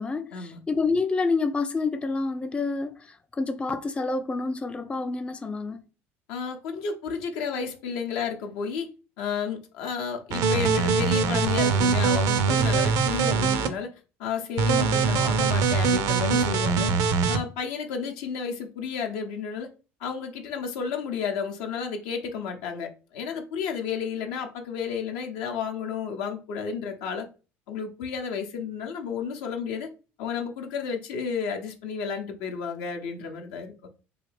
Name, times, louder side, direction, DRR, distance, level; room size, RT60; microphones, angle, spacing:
voice 1, 0.0-5.8, left 3 dB, 15° left, 0.4 m, -28 dB
voice 2, 6.3-8.9 9.2-13.9 14.2-16.9 17.3-19.7 20.0-27.3 27.7-29.9 30.2-33.7, left 6 dB, 75° left, 0.7 m, -32 dB
sound 1, 10.3-13.7 14.6-17.4, right 5 dB, 65° right, 0.5 m, -23 dB
3.2 x 2.3 x 3.2 m
hypercardioid pair, 75°, 7 cm